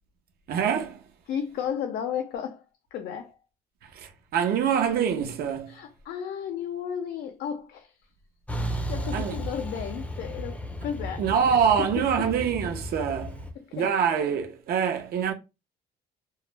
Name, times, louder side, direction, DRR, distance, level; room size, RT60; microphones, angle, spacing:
voice 1, 0.5-1.0 3.8-5.8 9.1-9.4 11.2-13.4 13.7-15.3, right 7 dB, 65° right, 0.7 m, -25 dB
voice 2, 1.3-2.6 2.9-3.4 5.7-7.9 8.6-11.3 12.2-12.3 13.6-13.9, left 8 dB, 70° left, 0.5 m, -34 dB
Truck, 8.5-13.5, equal, 10° left, 0.5 m, -34 dB
2.2 x 2.0 x 3.2 m
cardioid pair, 110°, 17 cm